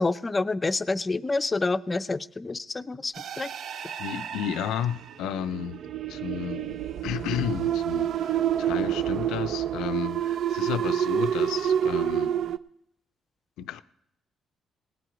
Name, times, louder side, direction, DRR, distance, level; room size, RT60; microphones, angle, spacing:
voice 1, 0.0-3.5, left 3 dB, 25° left, 0.5 m, -28 dB
sound 1, 3.1-12.6, right 10 dB, 70° right, 0.4 m, -28 dB
voice 2, 4.0-5.8 6.1-12.3 13.6-13.8, left 9 dB, 90° left, 0.5 m, -32 dB
18.5 x 7.8 x 5.0 m
cardioid pair, 90°, 0 cm